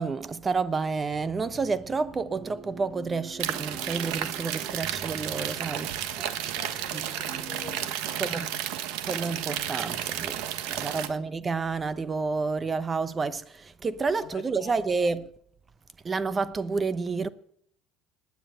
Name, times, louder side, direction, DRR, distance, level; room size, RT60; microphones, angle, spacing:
voice 1, 0.0-5.9 6.9-7.0 8.2-8.5 9.0-15.3 16.0-17.3, right 4 dB, 25° right, 0.8 m, -30 dB
sound 1, 1.1-7.9, right 4 dB, 40° right, 2.3 m, -46 dB
sound 2, 3.4-11.1, right 11 dB, 80° right, 1.3 m, -32 dB
voice 2, 6.6-8.6 11.0-11.3 14.2-14.7, left 11 dB, 65° left, 1.2 m, -46 dB
17.5 x 9.7 x 7.9 m
supercardioid pair, 105°, 0 cm